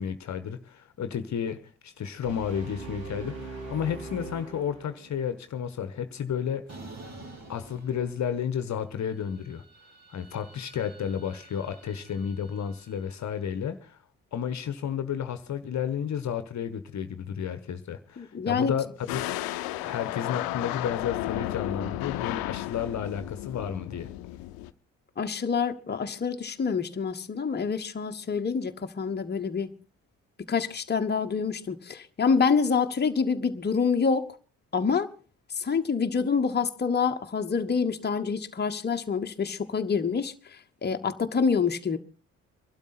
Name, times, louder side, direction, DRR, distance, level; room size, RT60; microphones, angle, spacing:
voice 1, 0.0-6.6 7.5-9.6 10.1-14.0 14.3-19.2 19.8-24.1, left 8 dB, 45° left, 1.2 m, -32 dB
sound 1, 2.2-5.2, right 3 dB, 70° right, 7.8 m, -40 dB
sound 2, 6.7-8.6 9.0-13.3, right 2 dB, 45° right, 3.7 m, -49 dB
voice 2, 18.2-18.7 25.2-29.7 30.5-34.3 34.7-35.1 35.5-42.0, left 5 dB, 25° left, 1.2 m, -27 dB
sound 3, 19.1-24.7, left 15 dB, 65° left, 0.8 m, -33 dB
23.0 x 12.5 x 4.2 m
hypercardioid pair, 50°, 38 cm